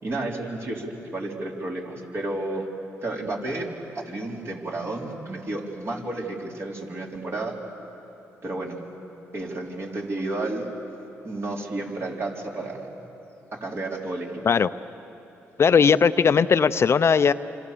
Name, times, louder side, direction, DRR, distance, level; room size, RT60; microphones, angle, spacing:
voice 1, 0.0-2.7 3.0-3.7 3.9-7.5 8.4-8.8 9.3-10.7 11.2-13.1 13.5-14.4, right 2 dB, 45° right, -1 dB, 4.4 m, -31 dB
voice 2, 15.6-17.3, left 6 dB, 50° left, 12 dB, 0.6 m, -18 dB
27.0 x 26.0 x 6.9 m, 2.9 s
supercardioid pair, 60°, 6 cm